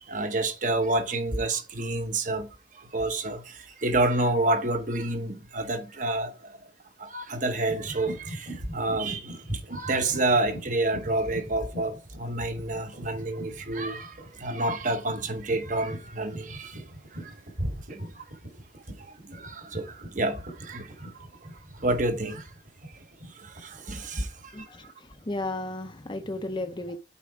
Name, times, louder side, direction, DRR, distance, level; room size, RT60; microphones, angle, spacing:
voice 1, 0.0-2.5 2.8-6.6 7.0-9.4 9.7-16.8 17.1-17.3 17.9-18.2 18.9-21.3 21.8-22.5 23.4-24.7, right 2 dB, 45° right, 1.1 m, -29 dB
sound 1, 7.7-24.4, right 1 dB, 60° right, 3.0 m, -40 dB
voice 2, 24.5-27.0, left 2 dB, 25° left, 0.6 m, -34 dB
8.4 x 4.4 x 4.9 m
head